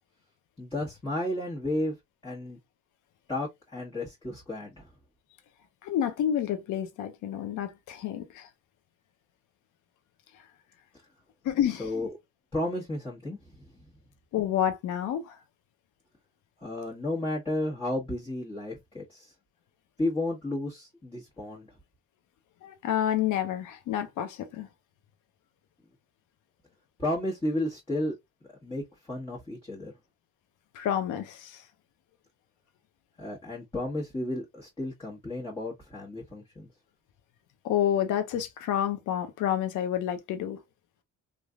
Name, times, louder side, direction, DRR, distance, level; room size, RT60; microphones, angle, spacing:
voice 1, 0.6-2.0 2.2-2.6 3.3-4.9 11.8-12.1 12.5-13.6 16.6-19.3 20.0-21.7 27.0-28.2 28.6-29.9 33.2-36.7, left 1 dB, 15° left, 1.4 m, -33 dB
voice 2, 5.8-8.5 11.4-11.9 14.3-15.4 22.6-24.7 30.7-31.6 37.6-40.6, left 10 dB, 90° left, 0.7 m, -29 dB
3.3 x 2.6 x 2.4 m
cardioid pair, 90°, 30 cm